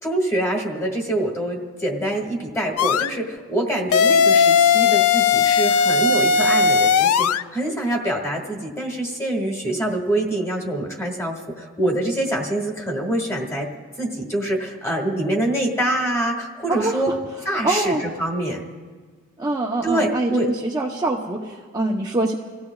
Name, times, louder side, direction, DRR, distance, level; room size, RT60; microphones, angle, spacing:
voice 1, 0.0-13.7 14.0-17.1 17.4-18.6 19.8-20.5, right 1 dB, 10° left, 1 dB, 2.0 m, -25 dB
sound 1, 2.8-3.1 3.9-7.4, left 5 dB, 70° left, 0.3 m, -17 dB
voice 2, 16.7-17.0 17.6-18.0 19.4-22.4, right 2 dB, 15° right, -3 dB, 0.8 m, -24 dB
28.0 x 16.0 x 2.4 m, 1.5 s
head